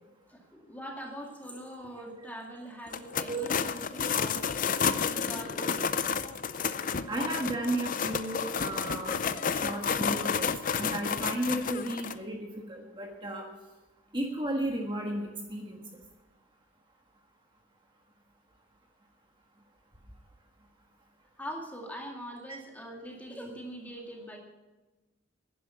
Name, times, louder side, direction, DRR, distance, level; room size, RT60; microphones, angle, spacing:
voice 1, 0.3-4.7 5.1-5.8 6.2-6.3 21.4-24.4, equal, 10° left, 0 dB, 2.1 m, -42 dB
sound 1, 2.9-12.1, left 6 dB, 40° left, 0.5 m, -31 dB
voice 2, 7.1-9.2 9.5-10.5 10.7-12.4 12.7-13.4 14.1-15.8, right 1 dB, 25° right, 0 dB, 1.5 m, -33 dB
11.0 x 10.5 x 8.2 m, 1.2 s
head